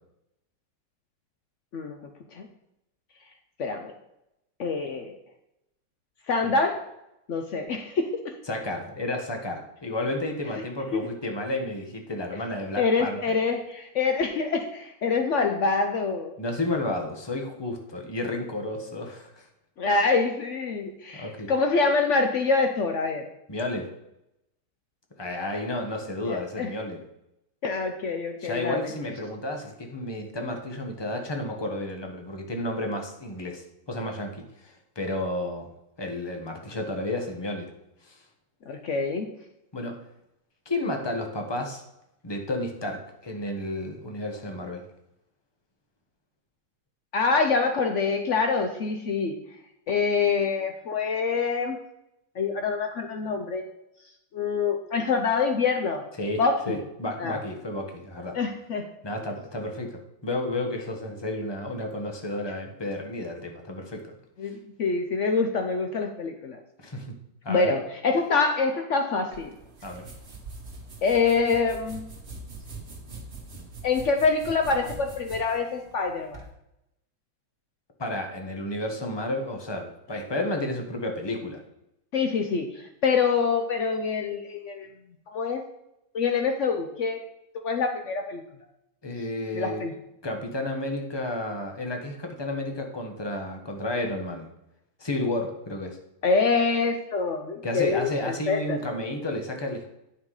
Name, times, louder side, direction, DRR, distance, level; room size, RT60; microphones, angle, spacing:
voice 1, 3.6-3.9 4.6-5.2 6.3-6.8 7.3-8.3 10.9-11.1 12.8-16.4 19.8-23.3 26.2-26.7 27.6-28.9 38.7-39.3 47.1-49.4 49.9-51.8 52.4-53.6 54.3-56.0 56.4-56.8 57.2-57.4 58.3-58.9 64.4-66.6 67.5-69.5 71.0-72.1 73.8-76.4 82.1-84.9 85.3-85.6 86.1-87.2 87.6-88.4 89.5-89.9 96.2-98.8, left 4 dB, 85° left, 5 dB, 0.6 m, -25 dB
voice 2, 8.5-13.4 16.4-19.5 21.1-21.5 23.5-23.9 25.2-27.0 28.4-35.7 36.0-37.7 38.0-38.2 39.7-40.0 40.6-41.8 42.2-44.8 56.2-58.4 59.0-64.1 64.4-64.5 66.8-67.1 67.4-67.7 69.8-70.1 78.0-81.6 89.0-89.8 90.2-94.5 95.0-96.0 97.6-99.9, left 1 dB, 15° left, 3 dB, 0.9 m, -32 dB
sound 1, 69.3-76.5, right 3 dB, 30° right, 1.8 m, -43 dB
10.0 x 5.8 x 4.8 m, 0.86 s
omnidirectional pair, 2.3 m